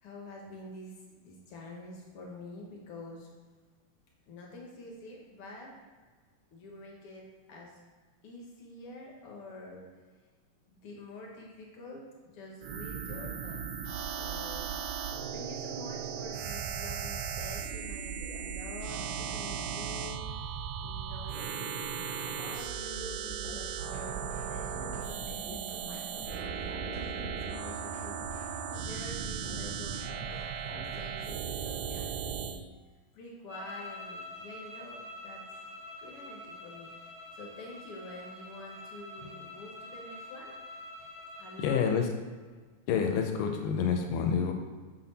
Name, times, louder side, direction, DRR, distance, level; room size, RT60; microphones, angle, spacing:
voice 1, 0.0-3.3 4.3-5.7 6.5-7.8 8.2-9.9 10.7-12.0 12.3-13.6 14.2-14.7 15.3-20.2 20.8-24.2 24.5-32.6 33.1-35.4 36.0-36.9 37.3-40.5 41.4-41.9, left 2 dB, 60° left, -1 dB, 1.5 m, -47 dB
sound 1, 12.6-32.6, right 7 dB, 80° right, 2.1 m, -37 dB
sound 2, 23.4-31.4, equal, 20° right, 2.1 m, -48 dB
sound 3, 33.5-41.9, left 1 dB, 40° right, 1.4 m, -46 dB
voice 2, 41.6-42.1 42.9-44.5, left 7 dB, 75° left, 4 dB, 2.2 m, -28 dB
6.6 x 5.9 x 4.1 m, 1.4 s
omnidirectional pair, 4.1 m